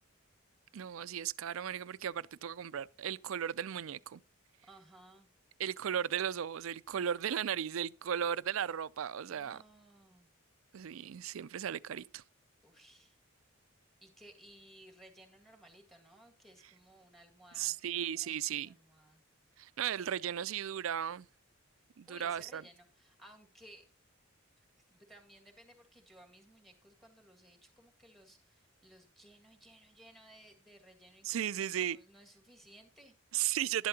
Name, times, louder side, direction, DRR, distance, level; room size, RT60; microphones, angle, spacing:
voice 1, 0.7-4.2 5.6-9.6 10.7-12.2 17.6-18.8 19.6-21.3 22.0-22.6 31.2-32.0 33.3-33.9, right 9 dB, 70° right, 0.4 m, -36 dB
voice 2, 4.6-5.3 9.2-10.3 12.6-13.2 14.0-19.2 22.1-23.9 24.7-33.1, right 1 dB, ahead, 2.0 m, -59 dB
11.5 x 11.0 x 2.8 m
head